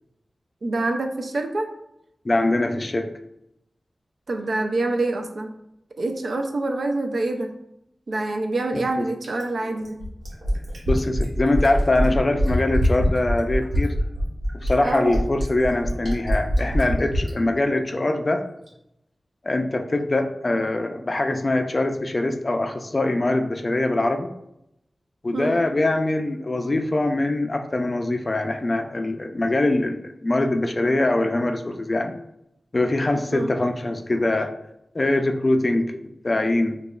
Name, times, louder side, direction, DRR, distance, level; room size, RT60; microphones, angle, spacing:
voice 1, 0.6-1.7 4.3-5.5 6.0-7.5 8.1-10.0 14.8-15.1 25.3-25.6 33.3-33.5, right 2 dB, 70° right, 5 dB, 0.4 m, -26 dB
voice 2, 2.2-3.1 8.7-8.8 10.9-13.9 14.5-18.4 19.4-24.3 25.2-32.1 32.7-34.5 34.9-36.0 36.2-36.8, left 2 dB, 35° left, 5 dB, 0.4 m, -23 dB
Fill (with liquid), 9.2-17.3 18.7-18.8, equal, 90° right, 1.2 m, -23 dB
4.8 x 2.3 x 2.3 m, 0.81 s
wide cardioid pair, 90°, 0 cm